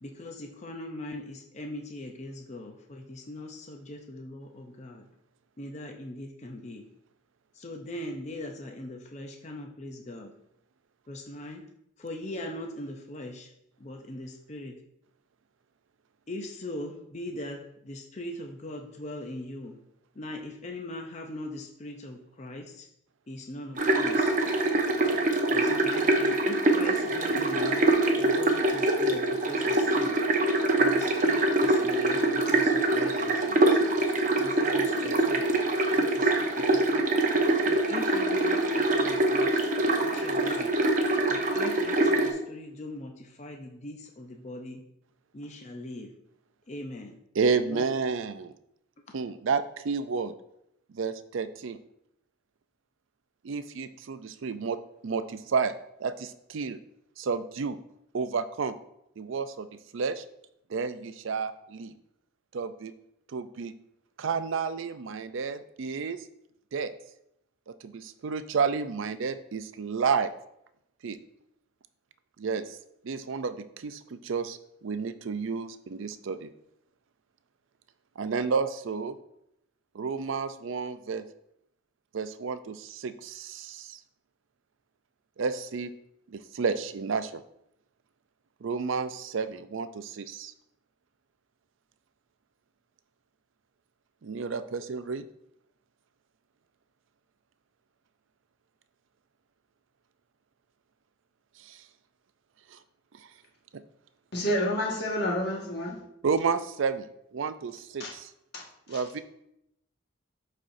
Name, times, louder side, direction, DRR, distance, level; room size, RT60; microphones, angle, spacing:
voice 1, 0.0-5.0 5.6-6.8 7.6-10.3 11.1-11.6 12.0-13.5 13.8-14.8 16.3-19.8 20.2-22.9 23.3-24.3 25.5-30.2 30.8-33.8 34.4-35.5 35.9-37.1 37.7-39.7 40.0-40.8 41.3-44.8 45.3-46.1 46.7-47.2 47.7-47.9, left 1 dB, 35° left, 2 dB, 0.5 m, -40 dB
sound 1, 23.8-42.3, right 2 dB, 40° right, 0.7 m, -24 dB
voice 2, 47.3-48.5 49.1-50.3 50.9-51.8 53.4-54.8 55.0-55.7 56.0-56.8 57.2-57.8 58.1-58.8 59.2-59.7 59.9-60.2 60.7-61.9 62.5-62.9 63.3-63.7 64.2-66.2 66.7-66.9 67.7-70.3 71.0-71.2 72.4-72.8 73.0-76.5 78.2-79.1 79.9-81.2 82.1-84.0 85.4-85.9 86.3-87.4 88.6-90.5 94.2-95.2 101.6-101.8 102.7-102.8 106.2-108.3 108.9-109.2, right 5 dB, 70° right, 12 dB, 0.4 m, -31 dB
voice 3, 104.3-106.0 108.0-108.1 108.5-108.6 108.9-109.0, equal, 50° left, -3 dB, 1.6 m, -29 dB
11.0 x 4.3 x 2.6 m, 0.78 s
head